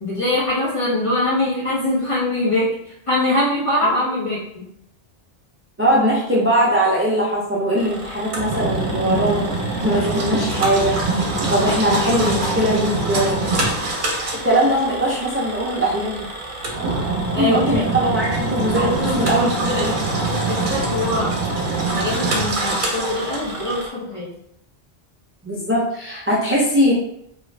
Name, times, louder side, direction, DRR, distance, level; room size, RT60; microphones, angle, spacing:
voice 1, 0.0-4.6 17.3-18.3 18.7-21.3 21.9-24.3, left 1 dB, 35° left, -7 dB, 1.0 m, -23 dB
voice 2, 5.8-9.5 9.8-11.0 11.5-13.4 14.3-16.3 17.3-19.9 25.4-26.9, equal, 20° right, -5 dB, 0.4 m, -20 dB
Engine, 7.8-23.9, right 2 dB, 55° right, 0.8 m, -24 dB
2.8 x 2.4 x 3.2 m, 0.74 s
omnidirectional pair, 1.0 m